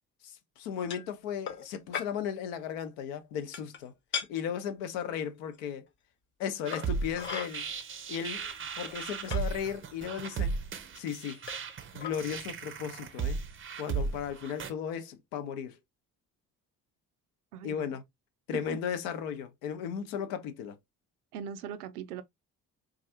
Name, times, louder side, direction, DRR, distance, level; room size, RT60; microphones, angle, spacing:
voice 1, 0.2-3.9 4.3-5.8 6.4-7.7 8.1-10.5 10.9-11.4 11.9-13.4 13.8-15.8 17.6-18.0 18.5-20.8, left 8 dB, 65° left, 0.7 m, -36 dB
sound 1, 0.9-1.1 1.5-1.7 1.9-2.1 3.5-3.8 4.1-4.3 5.5-5.6 6.7-7.5 8.3-8.4 8.8-9.4 10.3-10.4 11.5-11.7 12.0-12.2, left 7 dB, 25° left, 0.5 m, -37 dB
sound 2, 6.7-14.7, right 5 dB, 25° right, 0.6 m, -36 dB
voice 2, 17.5-18.0 18.5-18.8 21.3-22.2, right 8 dB, 70° right, 0.5 m, -40 dB
4.0 x 2.4 x 2.6 m
figure-of-eight pair, 45°, 47 cm